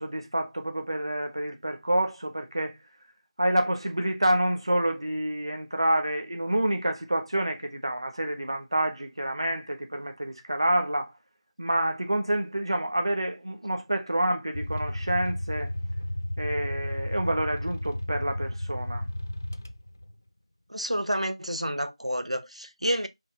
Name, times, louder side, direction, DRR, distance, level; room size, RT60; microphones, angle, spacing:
voice 1, 0.0-2.7 3.4-11.1 11.6-15.7 16.4-19.0, right 1 dB, 50° right, 1.3 m, -28 dB
sound 1, 14.5-20.1, left 1 dB, 25° left, 0.3 m, -33 dB
voice 2, 20.7-23.1, equal, 90° right, 0.9 m, -29 dB
4.7 x 2.9 x 3.7 m
figure-of-eight pair, 175°, 3 cm